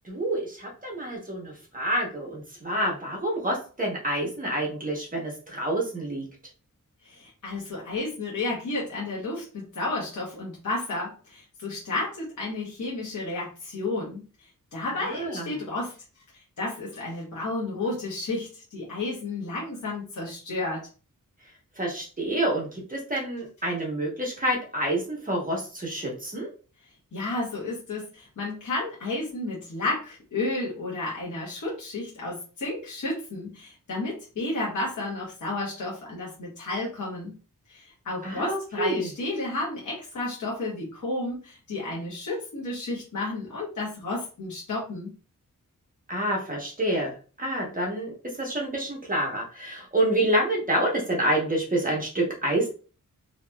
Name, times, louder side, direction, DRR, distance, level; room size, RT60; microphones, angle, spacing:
voice 1, 0.0-6.2 15.1-15.5 21.8-26.5 38.2-39.1 46.1-47.1 47.4-52.7, right 1 dB, 25° right, -2 dB, 0.9 m, -28 dB
voice 2, 7.0-14.2 14.7-15.9 16.6-20.8 27.1-37.3 37.7-45.1, left 2 dB, 60° left, -5 dB, 1.0 m, -32 dB
2.8 x 2.8 x 2.2 m, 0.36 s
wide cardioid pair, 135°, 33 cm